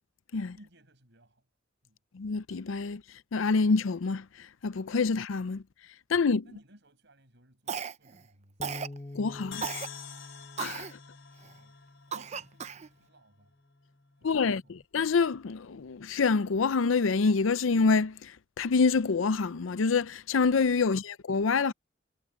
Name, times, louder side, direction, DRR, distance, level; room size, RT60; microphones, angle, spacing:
voice 1, 0.5-1.5 1.8-2.0 6.4-8.7 11.4-13.6 14.2-14.8, right 1 dB, 60° right, 6.7 m, -58 dB
voice 2, 2.1-3.0 3.3-5.6 6.1-6.4 9.1-9.7 10.6-10.9 14.2-14.6 14.9-21.7, left 4 dB, 85° left, 0.5 m, -26 dB
Cough, 7.7-8.2 8.6-9.0 9.6-9.9 10.6-10.9 11.4-11.5 12.1-12.9, right 6 dB, 35° right, 0.6 m, -35 dB
Bass guitar, 8.6-13.0 13.7-14.8, left 2 dB, 25° left, 1.1 m, -48 dB
sound 1, 9.5-13.1, left 9 dB, 70° left, 3.6 m, -46 dB
head